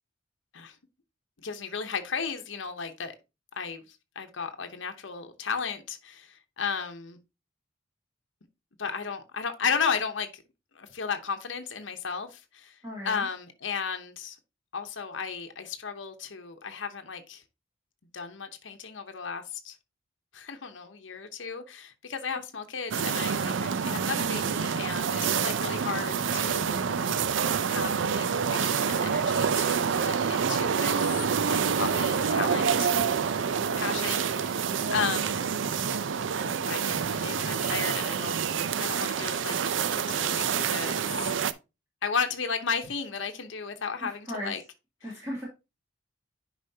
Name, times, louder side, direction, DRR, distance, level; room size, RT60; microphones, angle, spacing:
voice 1, 1.4-3.1 3.5-7.2 8.8-10.4 10.7-12.8 13.0-14.4 14.7-17.4 18.1-19.8 20.3-26.9 27.7-32.9 33.7-35.5 36.7-38.4 38.8-41.3 42.0-44.6 45.1-45.2, left 6 dB, 75° left, 0.9 m, -34 dB
voice 2, 12.8-13.2 32.5-32.8 44.3-44.5 45.0-45.4, equal, 15° right, 2.6 m, -36 dB
sound 1, 22.9-41.5, right 6 dB, 75° right, 0.5 m, -27 dB
9.9 x 5.0 x 2.8 m
head